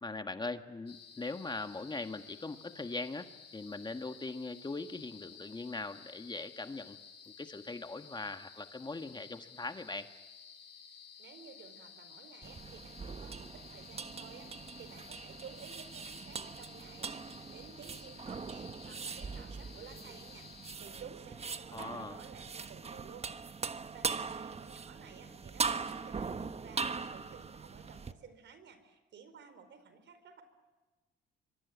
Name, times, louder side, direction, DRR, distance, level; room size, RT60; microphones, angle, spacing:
voice 1, 0.0-3.3 3.5-7.0 7.4-10.1 21.7-22.2, left 3 dB, 20° left, 8 dB, 1.6 m, -40 dB
sound 1, 0.9-20.8, left 7 dB, 55° left, 6.4 m, -54 dB
voice 2, 11.2-23.3 23.9-30.4, right 6 dB, 65° right, 11 dB, 4.6 m, -54 dB
sound 2, 12.4-28.1, right 5 dB, 30° right, 1.3 m, -41 dB
26.0 x 23.5 x 9.5 m, 1.2 s
cardioid pair, 90°, 20 cm